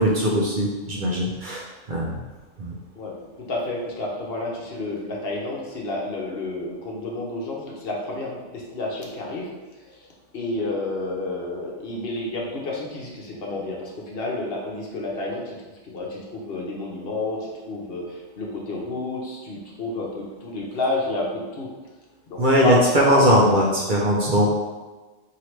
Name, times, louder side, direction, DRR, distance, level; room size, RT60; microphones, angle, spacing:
voice 1, 0.0-1.6 1.9-2.2 2.6-2.7 22.4-24.5, equal, 50° right, -3 dB, 0.7 m, -20 dB
voice 2, 3.0-9.5 9.9-10.0 10.3-15.6 15.8-21.7 22.3-22.8 23.1-23.3, left 2 dB, 60° left, -3 dB, 0.9 m, -30 dB
4.6 x 2.8 x 3.1 m, 1.2 s
omnidirectional pair, 1.2 m